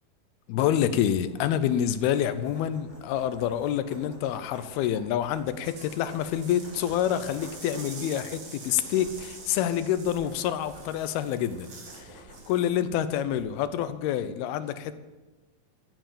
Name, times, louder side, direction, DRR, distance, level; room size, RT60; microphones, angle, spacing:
voice 1, 0.5-14.9, left 10 dB, 90° left, 12 dB, 2.7 m, -27 dB
sound 1, 1.2-13.9, right 1 dB, 15° right, 5.2 m, -51 dB
sound 2, 5.4-12.0 12.3-12.6, right 3 dB, 40° right, 2.2 m, -46 dB
13.0 x 9.0 x 7.5 m, 1.2 s
omnidirectional pair, 4.3 m